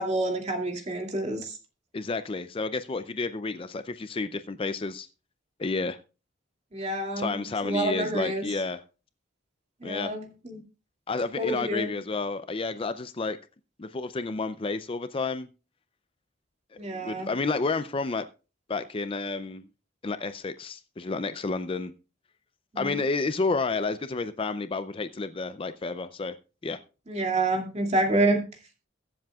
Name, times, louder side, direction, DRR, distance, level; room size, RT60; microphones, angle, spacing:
voice 1, 0.0-1.6 6.7-8.5 9.8-10.6 11.4-11.9 16.8-17.3 22.7-23.0 27.1-28.4, right 2 dB, 35° right, 2 dB, 2.5 m, -28 dB
voice 2, 1.9-5.1 5.6-6.0 7.2-8.8 9.8-10.1 11.1-13.4 13.8-15.5 16.9-18.2 18.7-19.6 20.0-21.9 22.8-26.4 26.6-26.8, left 3 dB, 25° left, 11 dB, 0.4 m, -30 dB
22.5 x 7.5 x 2.3 m, 0.33 s
head